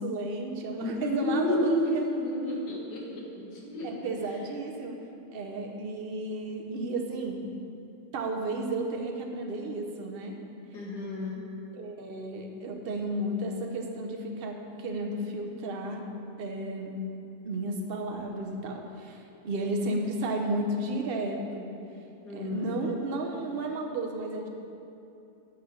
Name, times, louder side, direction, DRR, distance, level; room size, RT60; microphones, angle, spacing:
voice 1, 0.0-2.0 3.8-5.0 5.3-7.5 8.1-10.4 11.7-16.0 16.4-17.0 17.4-21.7 22.3-24.5, right 2 dB, 45° right, 2 dB, 0.9 m, -33 dB
voice 2, 0.8-3.9 10.7-11.4 22.2-22.7, left 1 dB, 85° left, -3 dB, 2.1 m, -30 dB
8.6 x 5.6 x 6.3 m, 2.7 s
omnidirectional pair, 1.7 m